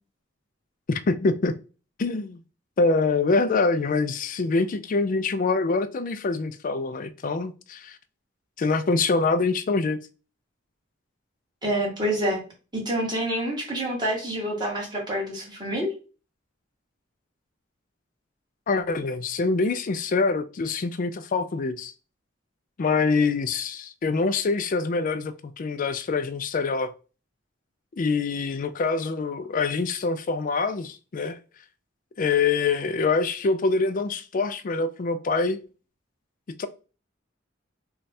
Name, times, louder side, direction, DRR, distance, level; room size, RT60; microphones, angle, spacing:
voice 1, 0.9-1.5 2.0-2.4 2.8-8.0 8.6-10.0 18.7-21.9 22.8-26.9 27.9-31.4 32.2-35.6 36.6-36.7, left 4 dB, 45° left, 0.4 m, -25 dB
voice 2, 11.6-12.4 12.7-15.9, right 1 dB, 25° right, 1.5 m, -27 dB
3.2 x 2.3 x 4.1 m
head